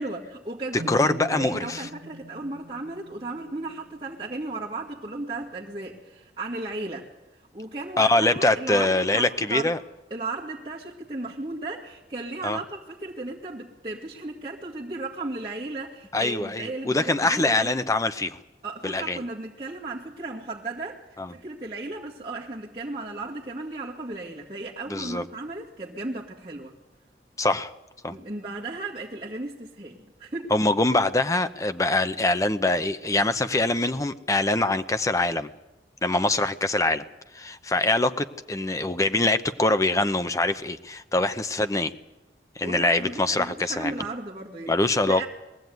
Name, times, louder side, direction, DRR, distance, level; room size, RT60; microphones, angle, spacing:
voice 1, 0.0-9.7 10.1-17.8 18.6-26.7 28.1-30.5 36.1-36.3 42.6-44.8 45.0-45.3, right 2 dB, 25° right, -6 dB, 2.0 m, -35 dB
voice 2, 0.7-1.9 8.0-9.8 12.4-12.6 16.1-18.4 18.8-19.2 21.2-21.3 24.9-25.2 27.4-27.7 28.0-28.1 30.5-35.5 36.0-37.0 37.3-41.9 42.6-43.9 44.7-45.2, left 2 dB, 20° left, 10 dB, 0.7 m, -24 dB
sound 1, 0.8-4.7, equal, 85° right, 1.4 m, -43 dB
21.5 x 15.0 x 9.3 m, 1.0 s
head